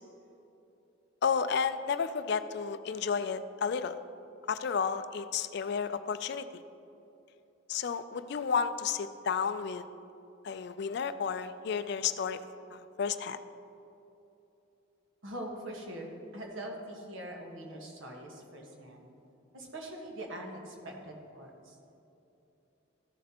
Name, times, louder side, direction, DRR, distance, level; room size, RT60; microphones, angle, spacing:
voice 1, 1.2-3.9 4.5-6.4 7.7-9.8 10.4-12.4 12.7-13.4, left 6 dB, 50° left, 12 dB, 0.3 m, -32 dB
voice 2, 15.2-19.1 19.5-21.8, right 1 dB, 65° right, 0 dB, 1.4 m, -43 dB
13.5 x 7.3 x 2.9 m, 2.9 s
head